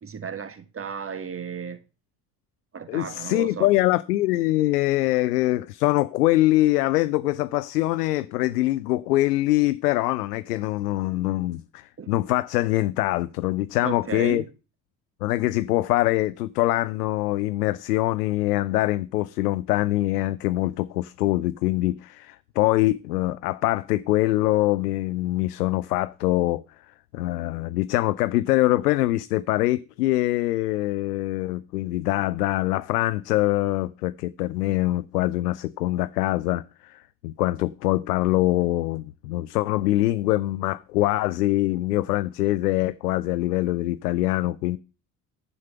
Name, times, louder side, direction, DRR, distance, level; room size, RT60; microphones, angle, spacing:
voice 1, 0.0-1.8 2.7-3.7 12.0-12.1 13.8-14.5, right 6 dB, 30° right, 1.5 m, -34 dB
voice 2, 2.9-14.4 15.2-26.6 27.1-44.8, left 17 dB, 75° left, 0.6 m, -24 dB
10.5 x 5.4 x 5.8 m
figure-of-eight pair, 50°, 47 cm